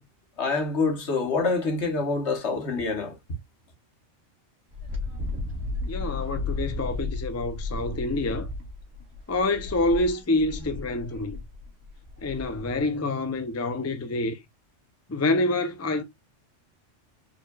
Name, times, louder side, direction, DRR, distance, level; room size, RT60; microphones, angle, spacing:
voice 1, 0.4-3.1, left 4 dB, 65° left, 1.5 m, -26 dB
Wind, 4.7-12.9, left 3 dB, 60° right, 1.9 m, -34 dB
voice 2, 5.9-8.5 9.3-11.4 12.2-14.4 15.1-16.0, left 2 dB, 20° left, 0.4 m, -27 dB
4.5 x 4.2 x 2.3 m
omnidirectional pair, 1.2 m